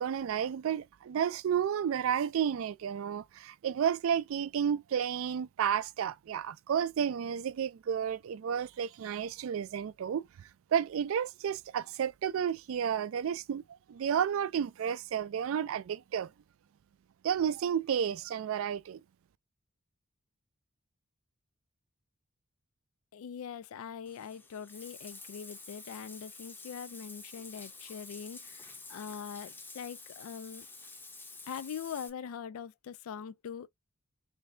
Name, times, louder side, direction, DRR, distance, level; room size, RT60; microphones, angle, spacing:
voice 1, 0.0-13.6 13.9-16.3 17.2-19.0, right 8 dB, 65° right, 0.3 m, -32 dB
voice 2, 23.1-30.7 31.5-33.7, left 7 dB, 75° left, 0.3 m, -42 dB
Bathtub (filling or washing), 24.1-32.1, left 3 dB, 10° left, 0.5 m, -49 dB
3.2 x 2.6 x 3.2 m
head